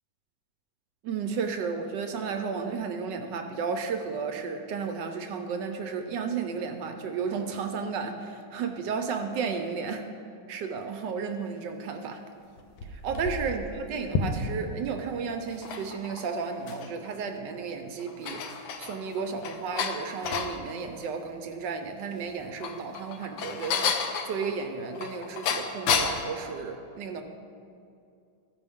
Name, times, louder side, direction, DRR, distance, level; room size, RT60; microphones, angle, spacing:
voice 1, 1.0-10.1 10.5-12.2 12.9-27.2, right 5 dB, 75° right, 5 dB, 1.2 m, -33 dB
sound 1, 12.6-14.7 15.4-17.1 17.5-17.6 18.0-20.6 22.3-26.3, left 6 dB, 90° left, 1.5 m, -31 dB
15.0 x 5.3 x 3.5 m, 2.4 s
omnidirectional pair, 2.1 m